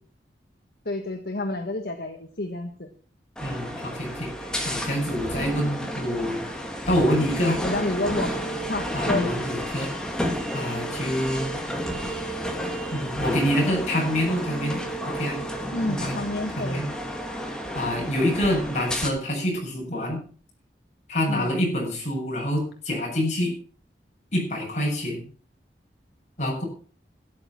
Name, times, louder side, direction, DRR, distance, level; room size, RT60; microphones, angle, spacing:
voice 1, 0.8-2.9 7.4-8.3 8.7-9.3 15.7-16.8 21.3-21.5, left 2 dB, 65° left, 5 dB, 1.4 m, -30 dB
voice 2, 3.4-6.4 6.9-7.6 8.9-9.9 10.5-11.5 12.9-15.4 15.9-16.2 16.5-16.9 17.7-20.2 21.1-23.5 24.3-25.3 26.4-26.6, equal, 40° left, -1 dB, 7.9 m, -26 dB
sound 1, 3.4-19.1, equal, 5° left, 2.2 m, -31 dB
12.5 x 10.5 x 6.1 m, 0.42 s
head